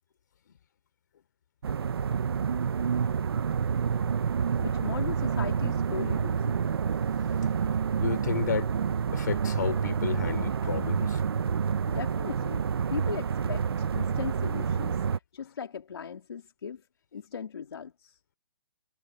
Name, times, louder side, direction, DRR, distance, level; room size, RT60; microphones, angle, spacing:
sound 1, 1.6-15.2, right 7 dB, 70° right, 1.0 m, -28 dB
voice 1, 4.6-6.7 11.9-12.6 12.9-16.8 17.1-18.2, left 7 dB, 75° left, 3.6 m, -38 dB
voice 2, 8.0-8.7 9.1-11.2, left 9 dB, 45° left, 4.0 m, -32 dB
hypercardioid pair, 180°, 13 cm